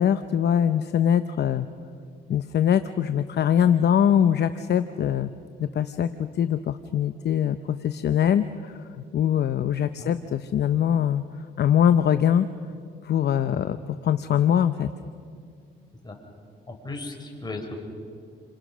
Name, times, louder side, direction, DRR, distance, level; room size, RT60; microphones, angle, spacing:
voice 1, 0.0-1.7 2.3-5.3 5.6-11.2 11.6-12.5 13.0-14.9, left 9 dB, 55° left, 11 dB, 0.8 m, -23 dB
voice 2, 16.7-17.8, left 2 dB, 20° left, 2 dB, 5.3 m, -36 dB
29.5 x 26.5 x 6.3 m, 2.2 s
cardioid pair, 90°, 20 cm